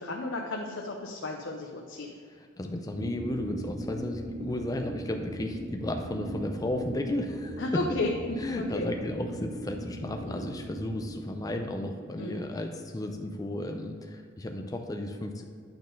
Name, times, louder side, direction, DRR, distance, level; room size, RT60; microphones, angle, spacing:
voice 1, 0.0-2.1 7.6-8.1 8.5-8.9 9.4-9.5 10.2-10.5 12.2-12.4, left 2 dB, 65° left, 1 dB, 0.6 m, -34 dB
voice 2, 2.4-7.6 8.4-15.4, left 1 dB, 20° left, 3 dB, 0.4 m, -34 dB
sound 1, 2.9-11.2, right 2 dB, 90° right, 0.9 m, -39 dB
8.7 x 4.1 x 5.3 m, 2.1 s
head